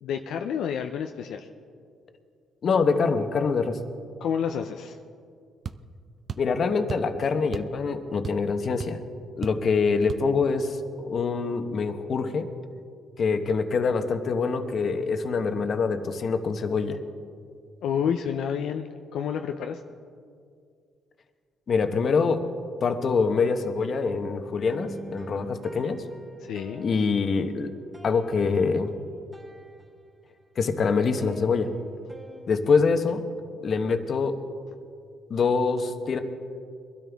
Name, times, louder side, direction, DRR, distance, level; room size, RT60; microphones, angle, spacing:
voice 1, 0.0-1.5 4.2-5.0 17.8-19.8 26.4-26.9, left 8 dB, 80° left, 5 dB, 0.6 m, -29 dB
voice 2, 2.6-3.8 6.4-9.0 9.4-12.5 13.2-17.0 21.7-22.5 22.8-26.1 26.8-27.7 28.0-28.9 30.6-31.7 32.5-33.2 33.6-34.4 35.3-36.2, left 4 dB, 50° left, 7 dB, 1.1 m, -25 dB
sound 1, 5.6-5.8 6.3-6.5 6.9-7.1 7.5-7.8 8.0-8.5 8.8-8.9 9.4-9.7 10.1-10.3, right 6 dB, 45° right, 0.5 m, -35 dB
sound 2, 24.7-30.5 30.7-32.5, right 2 dB, 25° right, 3.4 m, -46 dB
22.5 x 12.5 x 3.6 m, 2.3 s
cardioid pair, 90°, 0 cm